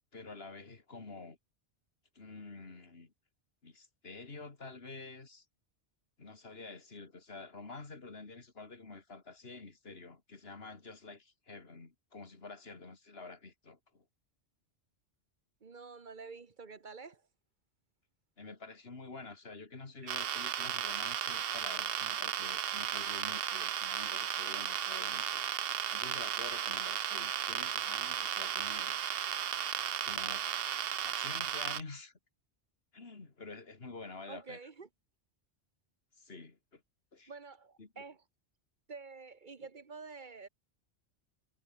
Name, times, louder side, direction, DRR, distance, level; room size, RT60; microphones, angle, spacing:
voice 1, 0.1-1.4 2.2-3.1 3.6-5.4 6.2-14.0 18.4-25.5 25.9-29.0 30.0-30.6 31.0-32.1 32.9-34.6 36.2-36.8 37.1-37.3 37.8-38.0, left 3 dB, 60° left, 2.6 m, -48 dB
voice 2, 15.6-17.3 20.0-20.1 34.3-34.9 37.3-38.2 38.9-40.5, right 4 dB, 45° right, 1.3 m, -48 dB
sound 1, 20.1-31.8, right 10 dB, 60° right, 0.9 m, -35 dB
omnidirectional pair, 1.2 m